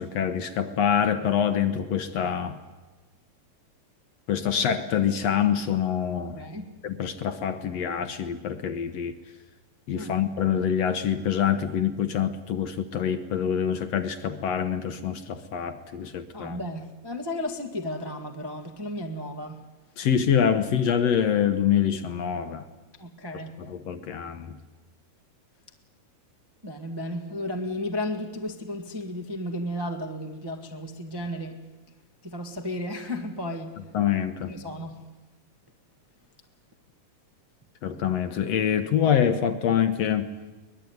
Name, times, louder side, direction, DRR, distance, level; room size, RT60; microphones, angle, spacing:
voice 1, 0.0-2.6 4.3-6.4 6.8-9.1 9.9-16.6 20.0-22.6 23.7-24.5 33.9-34.5 37.8-40.3, left 8 dB, 65° left, 1.8 m, -25 dB
voice 2, 6.3-6.7 10.0-10.1 16.3-19.6 23.0-23.6 26.6-31.6 32.2-33.8 34.5-35.0, left 1 dB, 20° right, 0.5 m, -34 dB
23.0 x 20.0 x 9.4 m
omnidirectional pair, 3.8 m